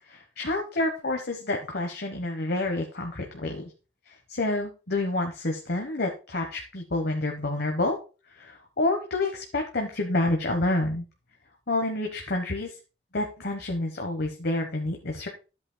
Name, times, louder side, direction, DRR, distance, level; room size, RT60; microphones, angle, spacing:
voice 1, 0.1-3.6 4.3-8.0 8.4-11.0 11.7-12.7 13.1-15.3, left 2 dB, 60° left, 3 dB, 1.2 m, -28 dB
13.0 x 8.4 x 2.3 m, 0.32 s
head